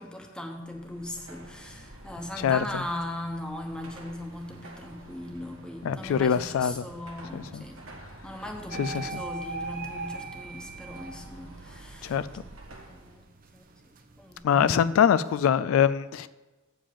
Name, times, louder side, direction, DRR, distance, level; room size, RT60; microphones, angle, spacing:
voice 1, 0.0-7.8 8.2-12.5 12.8-13.2 13.5-13.6 14.2-15.0, left 1 dB, 5° left, 3 dB, 1.0 m, -39 dB
Car passing by / Traffic noise roadway noise / Engine, 0.6-13.2, right 1 dB, 80° right, 1.5 m, -48 dB
voice 2, 5.8-6.8 7.3-7.6 8.7-9.1 12.0-12.3 14.4-16.3, left 8 dB, 80° left, 14 dB, 0.3 m, -23 dB
sound 1, 8.7-11.6 12.1-14.4, right 3 dB, 45° right, 0.7 m, -40 dB
8.5 x 5.0 x 7.3 m, 1.2 s
head